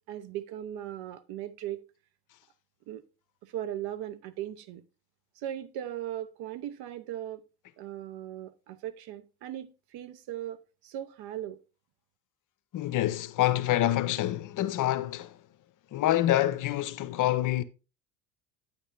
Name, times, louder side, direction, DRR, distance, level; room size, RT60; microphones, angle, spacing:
voice 1, 0.0-1.8 2.9-3.0 3.4-4.8 5.4-7.4 7.8-11.6, right 12 dB, 60° right, 0.9 m, -38 dB
voice 2, 12.7-15.4 15.9-17.6, left 14 dB, 45° left, 0.7 m, -26 dB
8.8 x 8.3 x 2.6 m
hypercardioid pair, 75°, 44 cm